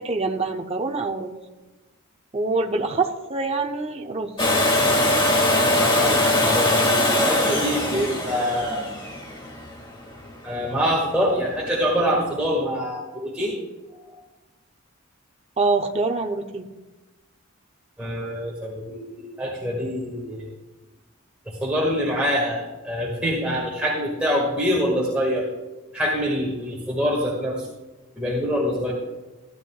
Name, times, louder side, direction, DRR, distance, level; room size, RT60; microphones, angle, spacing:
voice 1, 0.0-1.4 2.3-4.4 15.6-16.7, right 3 dB, 30° right, 3 dB, 0.6 m, -25 dB
Domestic sounds home sounds, 4.4-10.2 12.1-12.2, left 1 dB, 20° left, 1.8 m, -21 dB
voice 2, 5.8-6.1 6.4-8.8 10.4-13.5 14.1-14.2 18.0-20.4 21.6-25.4 25.9-27.7 28.2-28.9, equal, 5° right, -5 dB, 1.7 m, -25 dB
14.5 x 11.0 x 2.3 m, 1.1 s
head